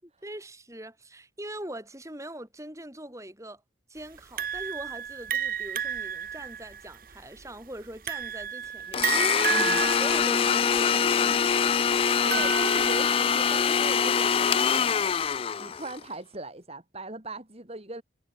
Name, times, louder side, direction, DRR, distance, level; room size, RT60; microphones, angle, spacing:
voice 1, 0.0-3.6 3.9-11.5, right 1 dB, 15° right, 7.4 m, -42 dB
sound 1, 4.4-13.7, right 8 dB, 50° right, 1.4 m, -32 dB
Domestic sounds home sounds, 8.9-16.0, left 7 dB, 30° left, 0.3 m, -24 dB
voice 2, 9.5-9.8 12.2-15.1 15.6-18.0, right 2 dB, 30° right, 2.7 m, -39 dB
head